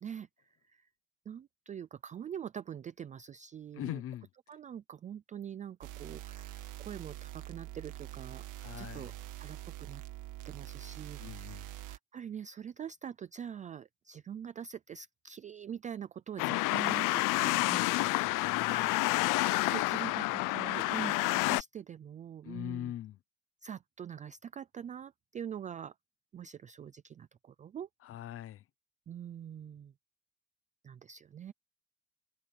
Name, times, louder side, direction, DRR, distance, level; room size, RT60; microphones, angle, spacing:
voice 1, 0.0-0.9 1.3-4.0 4.5-8.4 8.8-9.1 9.4-10.0 10.5-22.9 23.6-25.9 26.3-27.9 29.1-29.9 30.8-31.5, right 8 dB, 25° right, 0.4 m, -44 dB
voice 2, 3.8-4.3 8.6-9.1 11.2-11.6 17.9-19.0 22.4-23.2 28.0-28.6, left 12 dB, 45° left, 0.7 m, -42 dB
sound 1, 5.8-12.0, right 15 dB, 70° right, 1.7 m, -45 dB
sound 2, 16.4-21.6, left 21 dB, 75° left, 0.5 m, -29 dB
cardioid pair, 165°, 32 cm